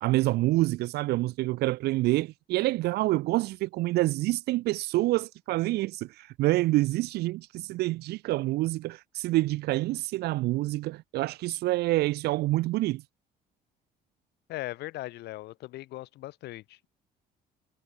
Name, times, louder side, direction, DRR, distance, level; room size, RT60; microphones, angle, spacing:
voice 1, 0.0-13.0, right 18 dB, 75° right, 0.4 m, -27 dB
voice 2, 14.5-16.9, left 17 dB, 80° left, 3.9 m, -39 dB
cardioid pair, 110°, 17 cm